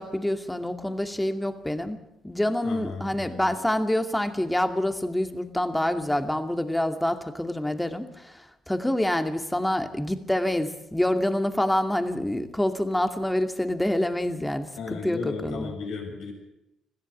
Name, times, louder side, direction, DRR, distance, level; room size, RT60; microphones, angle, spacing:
voice 1, 0.0-2.0 2.2-15.7, left 1 dB, 10° left, 7 dB, 2.3 m, -27 dB
voice 2, 2.6-3.6 14.8-16.3, left 4 dB, 70° left, 1 dB, 6.8 m, -35 dB
21.5 x 15.0 x 8.6 m, 0.87 s
hypercardioid pair, 55°, 0 cm